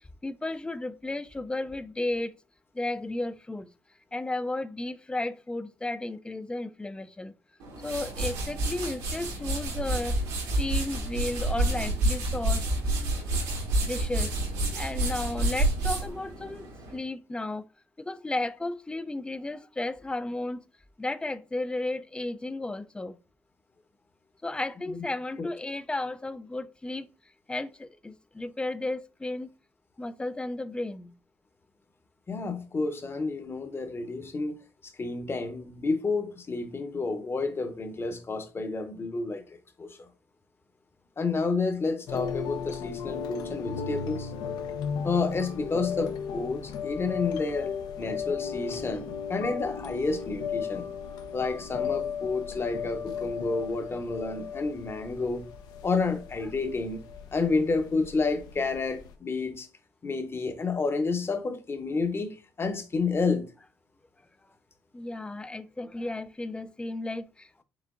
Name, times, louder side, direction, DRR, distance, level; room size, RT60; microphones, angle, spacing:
voice 1, 0.0-2.3 2.7-3.7 4.1-7.4 7.8-10.2 10.6-12.7 13.8-14.3 14.7-16.7 16.9-17.7 18.0-20.6 21.0-23.2 24.4-27.1 27.5-29.5 30.0-31.1 64.9-67.6, left 2 dB, 15° left, 0.3 m, -33 dB
sound 1, 7.6-17.0, right 2 dB, 85° right, 1.5 m, -29 dB
voice 2, 32.3-34.6 35.0-40.0 41.2-44.3 45.0-47.7 48.0-50.9 51.3-55.5 55.8-57.0 57.3-59.7 60.0-63.5, left 4 dB, 35° left, 0.9 m, -30 dB
sound 2, 42.1-59.1, left 7 dB, 75° left, 0.6 m, -35 dB
4.9 x 3.4 x 2.5 m
supercardioid pair, 60°, 7 cm